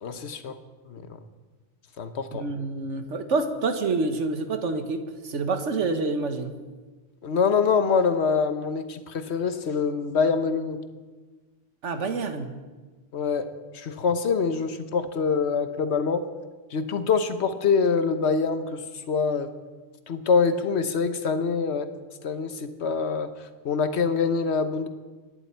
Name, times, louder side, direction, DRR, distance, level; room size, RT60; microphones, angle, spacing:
voice 1, 0.0-0.5 0.9-1.0 2.0-2.5 7.2-10.8 13.1-13.5 13.7-16.2 16.7-18.8 19.1-19.5 20.1-21.9 22.2-23.3 23.6-24.9, left 5 dB, 65° left, 9 dB, 1.2 m, -25 dB
voice 2, 2.3-6.5 11.8-12.5, right 3 dB, 80° right, 7 dB, 1.5 m, -27 dB
25.5 x 11.0 x 4.5 m, 1.3 s
omnidirectional pair, 1.2 m